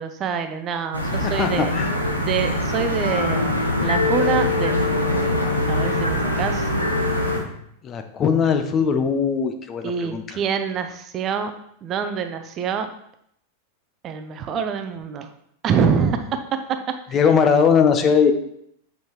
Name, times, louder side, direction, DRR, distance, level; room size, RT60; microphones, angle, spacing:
voice 1, 0.0-1.7 2.2-5.3 5.7-6.7 9.8-11.5 11.8-12.9 14.0-15.3 15.6-16.8 17.1-17.2, right 6 dB, 30° right, 8 dB, 0.6 m, -26 dB
sound 1, 0.9-7.4, left 1 dB, 85° left, 1.0 m, -22 dB
voice 2, 1.2-1.9 7.8-10.2 17.1-18.3, left 6 dB, 25° left, 7 dB, 0.7 m, -19 dB
7.8 x 5.2 x 3.1 m, 0.70 s
figure-of-eight pair, 90°, 0 cm